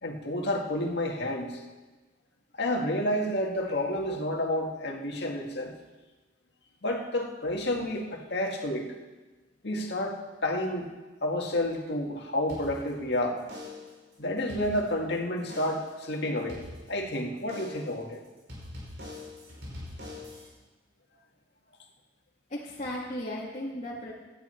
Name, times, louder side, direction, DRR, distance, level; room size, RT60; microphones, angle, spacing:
voice 1, 0.0-1.6 2.6-5.7 6.8-8.9 9.6-10.9 11.2-13.4 14.2-16.6 16.9-18.2, left 1 dB, 65° left, 1 dB, 2.0 m, -30 dB
sound 1, 12.5-13.1 13.5-14.0 14.4-15.1 15.5-16.0 16.5-17.1 17.5-18.0 18.5-20.5, left 2 dB, 70° right, 5.8 m, -43 dB
voice 2, 22.5-24.1, left 1 dB, 40° left, -7 dB, 2.1 m, -35 dB
17.5 x 12.5 x 4.5 m, 1.2 s
head